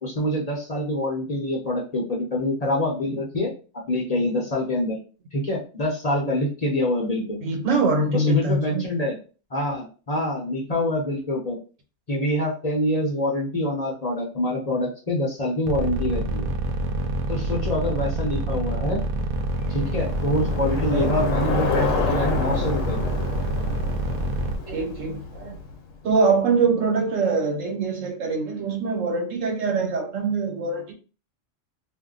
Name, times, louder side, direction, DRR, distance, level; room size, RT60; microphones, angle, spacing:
voice 1, 0.0-3.5 3.9-5.0 5.3-7.4 8.1-9.2 9.5-11.6 12.1-16.5 17.3-19.0 19.7-23.1, left 1 dB, 35° left, -2 dB, 0.8 m, -25 dB
voice 2, 7.4-8.8 20.7-21.2 24.0-24.2 24.7-25.6 26.0-30.9, right 3 dB, 85° right, 2 dB, 1.3 m, -24 dB
sound 1, 15.7-24.6, right 2 dB, 60° right, 0.6 m, -26 dB
Bicycle, 19.4-25.9, left 5 dB, 85° left, 1.0 m, -29 dB
2.6 x 2.2 x 3.7 m, 0.37 s
omnidirectional pair, 1.3 m